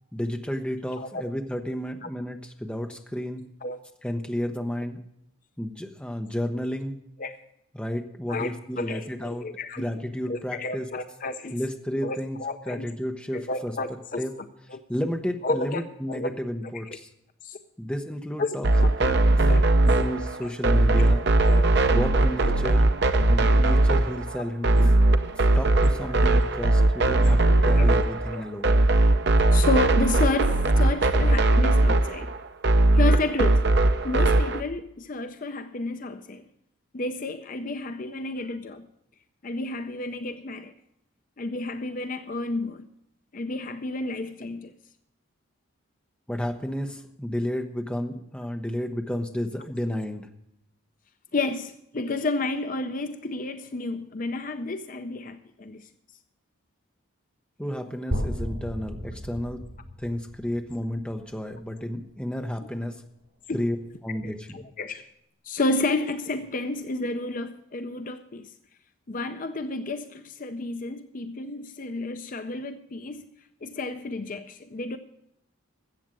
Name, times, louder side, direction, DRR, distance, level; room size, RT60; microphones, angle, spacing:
voice 1, 0.1-3.5 4.0-5.0 5.6-7.0 7.7-9.5 9.8-10.9 11.5-12.4 12.7-13.7 14.2-14.4 14.9-17.1 17.8-18.7 19.0-21.2 21.9-22.9 23.3-25.0 25.5-28.7 46.3-50.3 57.6-59.6 60.0-63.0 63.5-63.8 64.0-64.7, equal, 5° left, 5 dB, 0.8 m, -32 dB
voice 2, 0.8-1.2 2.0-2.1 3.6-3.8 7.2-7.4 8.3-9.9 10.2-11.6 12.0-12.9 13.3-14.8 15.4-16.3 16.8-17.0 17.4-17.6 18.4-18.6 18.8-19.1 19.5-19.6 20.4-20.5 21.1-21.7 22.5-22.6 24.6-24.7 27.7-27.9 28.3-28.6 29.5-32.3 32.9-33.6 34.0-36.4 36.9-38.9 39.4-40.7 41.4-42.9 43.3-44.7 51.3-55.9 63.5-63.6 64.2-65.1 65.4-68.5 69.1-73.3 73.6-75.0, left 2 dB, 40° left, 10 dB, 0.5 m, -31 dB
sound 1, 18.6-34.6, right 2 dB, 50° right, 0.7 m, -20 dB
sound 2, 58.1-62.0, equal, 70° right, 5.9 m, -35 dB
13.5 x 8.0 x 7.5 m, 0.77 s
head